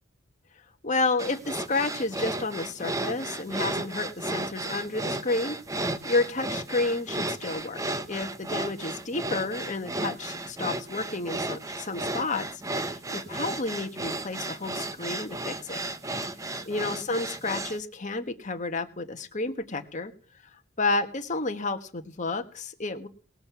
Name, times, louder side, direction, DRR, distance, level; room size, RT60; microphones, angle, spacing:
voice 1, 0.8-12.5 12.7-15.8 16.7-20.1 20.8-23.1, left 3 dB, 35° left, 6 dB, 1.5 m, -31 dB
sound 1, 1.2-17.8, right 2 dB, 15° right, 0.7 m, -34 dB
19.0 x 6.9 x 7.0 m, 0.40 s
head